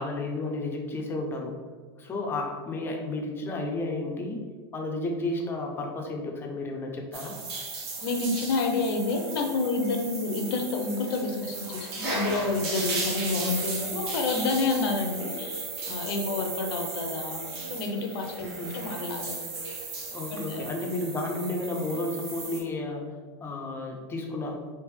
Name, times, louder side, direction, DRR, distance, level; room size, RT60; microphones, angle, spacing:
voice 1, 0.0-1.6 2.0-4.4 4.7-7.4 18.4-18.7 20.1-23.1 23.4-24.5, left 2 dB, 15° left, 1 dB, 0.4 m, -32 dB
sound 1, 7.1-22.6, right 3 dB, 70° right, 1.2 m, -36 dB
voice 2, 8.0-18.5 18.7-19.4 20.3-20.7, left 3 dB, 65° left, 4 dB, 0.6 m, -29 dB
3.3 x 2.9 x 3.2 m, 1.5 s
supercardioid pair, 155°, 14 cm